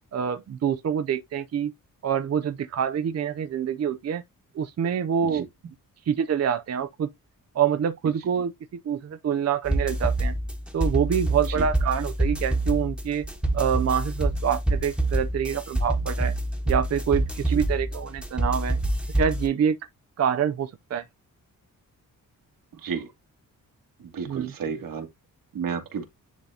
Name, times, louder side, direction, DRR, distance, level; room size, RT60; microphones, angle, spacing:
voice 1, 0.1-1.7 2.0-4.2 4.5-5.5 6.1-7.1 7.5-8.5 8.8-10.3 10.7-13.2 13.5-16.3 16.7-18.8 19.1-19.8 20.2-21.0 24.3-24.5, right 8 dB, 50° right, 0.6 m, -26 dB
sound 1, 9.6-19.5, right 1 dB, 5° right, 1.2 m, -26 dB
voice 2, 11.3-11.6 17.4-17.6 22.7-23.1 24.0-25.1 25.5-26.0, right 6 dB, 80° right, 2.2 m, -33 dB
10.5 x 3.9 x 2.8 m
wide cardioid pair, 160°, 34 cm